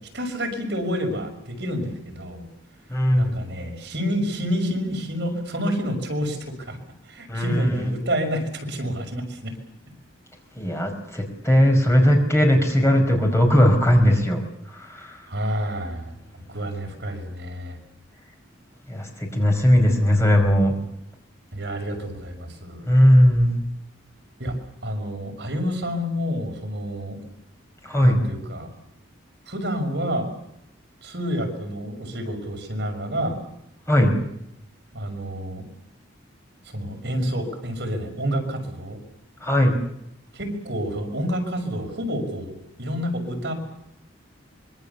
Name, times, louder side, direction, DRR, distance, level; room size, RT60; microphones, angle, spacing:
voice 1, 0.1-2.5 3.2-6.4 6.7-6.8 7.1-9.5 15.3-17.8 21.5-22.9 24.4-24.6 24.8-27.2 28.0-28.7 29.5-30.3 31.0-33.4 34.9-35.6 36.7-39.0 40.3-43.5, equal, 55° right, 3 dB, 5.9 m, -29 dB
voice 2, 2.9-3.4 7.3-7.9 10.6-14.4 14.7-15.2 18.9-20.8 22.9-23.6 27.8-28.2 33.9-34.2 39.4-39.8, equal, 15° left, 3 dB, 5.1 m, -18 dB
25.5 x 23.5 x 7.1 m, 0.80 s
head